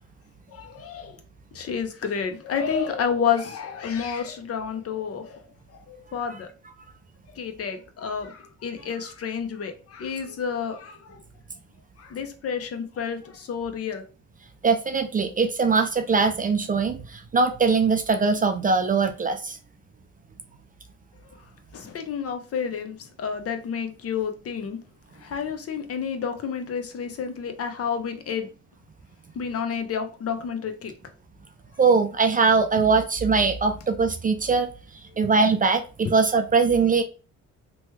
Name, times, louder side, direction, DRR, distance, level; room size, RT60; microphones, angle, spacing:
voice 1, 0.5-1.2 1.5-5.4 5.7-6.5 7.3-11.2 12.0-14.0 21.7-24.8 25.2-28.5 29.3-30.9, left 7 dB, 50° left, 0.6 m, -30 dB
voice 2, 14.6-19.6 31.8-34.7 35.2-37.0, right 4 dB, 30° right, 0.4 m, -21 dB
3.0 x 2.2 x 3.0 m
cardioid pair, 90°, 30 cm